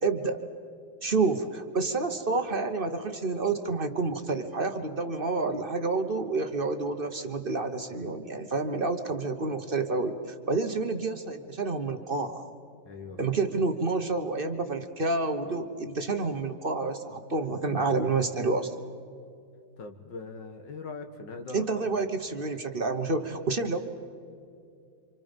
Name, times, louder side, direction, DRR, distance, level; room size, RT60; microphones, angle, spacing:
voice 1, 0.0-0.4 1.0-10.2 10.5-12.5 13.2-18.7 21.5-23.8, right 3 dB, 35° right, 7 dB, 1.1 m, -29 dB
voice 2, 12.9-13.4 19.8-21.9, left 3 dB, 70° left, 5 dB, 2.1 m, -41 dB
28.5 x 26.5 x 5.3 m, 2.5 s
omnidirectional pair, 2.1 m